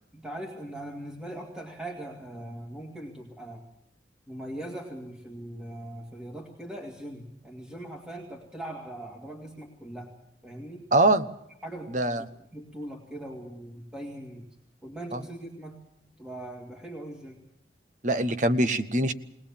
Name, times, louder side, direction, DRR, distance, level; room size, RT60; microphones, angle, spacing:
voice 1, 0.1-3.6 4.3-10.1 10.4-10.9 11.6-14.5 14.8-15.8 16.2-17.4, right 1 dB, 5° right, 0 dB, 2.1 m, -40 dB
voice 2, 10.9-11.3 11.9-12.2 15.1-15.2 18.0-19.1, right 1 dB, 40° right, 10 dB, 1.0 m, -23 dB
20.5 x 20.0 x 7.2 m, 0.76 s
head